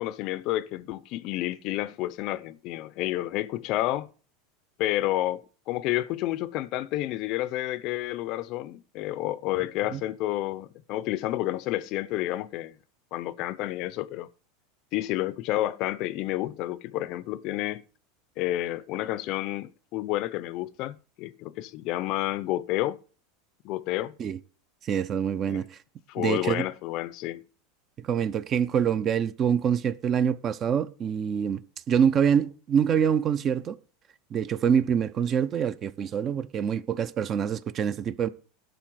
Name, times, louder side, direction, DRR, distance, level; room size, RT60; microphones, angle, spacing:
voice 1, 0.0-4.1 4.8-12.7 13.1-14.3 14.9-17.8 18.4-23.0 23.6-24.1 25.5-25.6 26.1-27.4, left 15 dB, 45° left, 0.6 m, -30 dB
voice 2, 24.8-25.8 26.2-26.6 28.0-31.6 31.9-33.8 34.3-38.3, right 8 dB, 30° right, 0.6 m, -25 dB
12.0 x 4.1 x 7.7 m
supercardioid pair, 145°, 0 cm